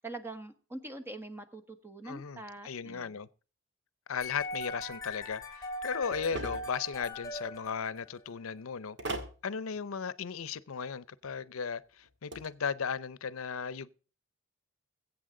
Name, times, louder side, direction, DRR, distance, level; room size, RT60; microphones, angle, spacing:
voice 1, 0.0-3.2, right 2 dB, 10° right, 1.4 m, -44 dB
voice 2, 2.0-3.3 4.1-9.0 9.4-13.9, left 6 dB, 85° left, 0.6 m, -36 dB
sound 1, 4.2-8.3, left 1 dB, 15° left, 3.3 m, -40 dB
sound 2, 6.1-6.8 9.0-9.4 12.0-12.5, right 1 dB, 60° right, 2.0 m, -38 dB
21.5 x 8.2 x 3.8 m
head